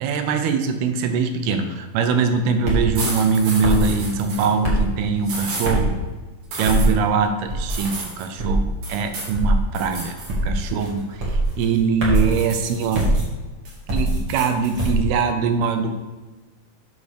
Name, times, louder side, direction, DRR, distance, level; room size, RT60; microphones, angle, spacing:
voice 1, 0.0-6.0 6.5-8.6 8.9-10.1 10.4-11.0 11.6-13.1 13.9-16.0, right 5 dB, 85° right, 7 dB, 2.6 m, -22 dB
sound 1, 2.6-2.9 3.6-3.9 4.6-4.9 5.6-5.9 6.6-6.9 7.5-7.8 8.4-8.7 9.3-9.6 10.3-10.6 11.2-11.4 12.0-12.3 12.9-13.2 13.9-14.2 14.8-15.0, right 1 dB, 40° right, 1.9 m, -21 dB
sound 2, 2.9-4.5 5.2-5.7 6.5-6.9 7.7-8.3 8.8-9.3 9.7-10.3 10.6-11.8 12.1-13.2 13.6-14.9, right 3 dB, 65° right, 3.5 m, -33 dB
8.1 x 4.1 x 6.5 m, 1.2 s
omnidirectional pair, 4.4 m